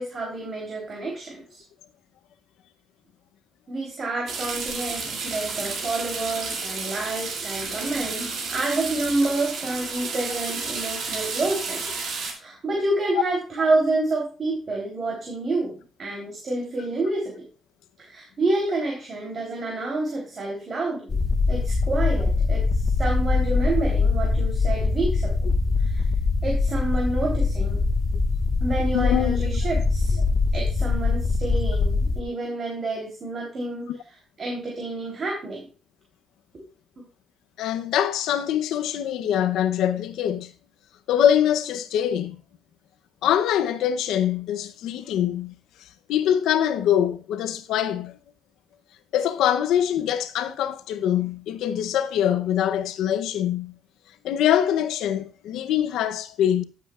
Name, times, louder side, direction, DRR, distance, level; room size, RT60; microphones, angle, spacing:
voice 1, 0.0-1.6 3.7-11.8 12.3-17.4 18.0-21.2 21.5-25.5 25.8-26.0 26.4-27.8 28.6-30.2 30.5-33.9 34.4-35.7 36.5-36.6, right 2 dB, 45° right, 3.4 m, -28 dB
sound 1, 4.3-12.3, right 4 dB, 70° right, 2.7 m, -31 dB
sound 2, 21.1-32.2, left 3 dB, 40° left, 1.4 m, -23 dB
voice 2, 28.9-29.6 33.9-34.0 37.6-40.5 41.1-42.3 43.2-45.5 46.1-48.2 49.1-53.7 54.2-56.6, left 10 dB, 85° left, 0.7 m, -23 dB
14.5 x 7.7 x 2.4 m
cardioid pair, 90°, 0 cm